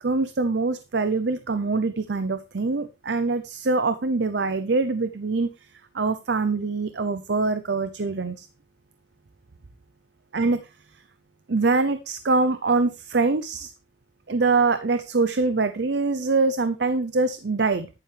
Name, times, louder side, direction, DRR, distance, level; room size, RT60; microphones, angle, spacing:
voice 1, 0.0-5.5 5.9-8.5 10.3-10.6 11.5-13.7 14.3-17.9, right 3 dB, 65° right, 11 dB, 0.7 m, -24 dB
10.5 x 9.1 x 3.4 m, 0.27 s
head